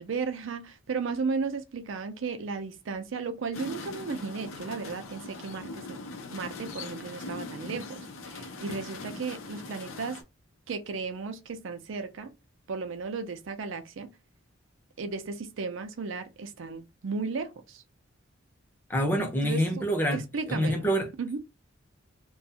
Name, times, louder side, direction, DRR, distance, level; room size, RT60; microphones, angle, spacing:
voice 1, 0.0-6.0 6.3-10.2 10.7-12.3 12.7-14.1 15.0-17.8 19.4-19.8 20.1-20.9 21.2-21.4, right 4 dB, 75° right, 0.4 m, -35 dB
sound 1, 3.5-10.2, left 3 dB, 85° left, 0.5 m, -41 dB
voice 2, 18.9-20.2 20.5-21.1, equal, 10° left, 0.6 m, -26 dB
2.4 x 2.2 x 2.7 m
head